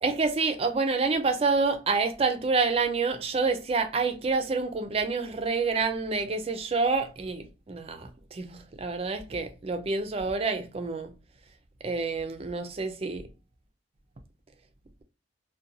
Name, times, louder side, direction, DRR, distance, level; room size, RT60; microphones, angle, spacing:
voice 1, 0.0-11.1 11.8-13.3, right 4 dB, 35° right, 0.4 m, -28 dB
2.6 x 2.2 x 2.6 m
head